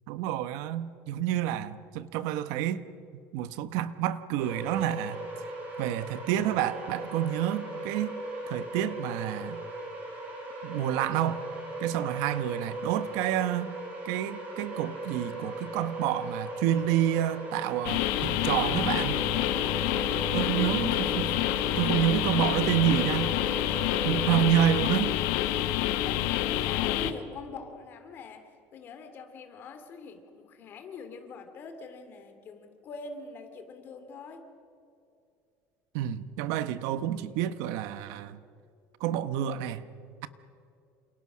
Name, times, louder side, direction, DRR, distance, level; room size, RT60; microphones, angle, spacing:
voice 1, 0.1-2.8 3.3-8.2 8.5-9.6 10.6-11.4 11.8-13.8 14.0-19.2 20.3-21.4 21.8-23.4 24.0-25.2 35.9-38.4 39.0-39.8, right 11 dB, 75° right, 1.2 m, -29 dB
sound 1, 4.4-24.4, right 1 dB, 25° right, 6.3 m, -38 dB
sound 2, 17.8-27.1, left 13 dB, 80° left, 1.6 m, -28 dB
voice 2, 20.5-20.8 26.0-28.4 28.7-34.4, left 4 dB, 35° left, 2.9 m, -43 dB
29.0 x 27.5 x 6.4 m
cardioid pair, 175°, 6 cm